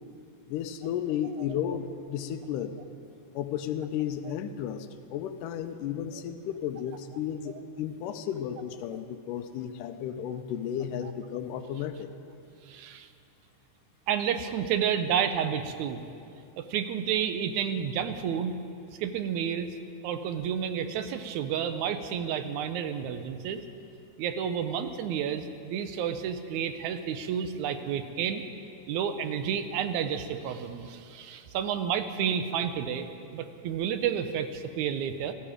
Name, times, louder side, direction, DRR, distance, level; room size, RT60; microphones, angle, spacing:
voice 1, 0.5-2.8 3.4-12.1, left 9 dB, 85° left, 9 dB, 2.2 m, -33 dB
voice 2, 12.7-13.1 14.1-16.0 16.6-18.5 19.0-19.7 20.0-23.6 24.2-28.4 28.9-33.1 33.3-35.3, right 8 dB, 75° right, 9 dB, 1.9 m, -30 dB
17.0 x 13.5 x 5.0 m, 2.6 s
omnidirectional pair, 3.7 m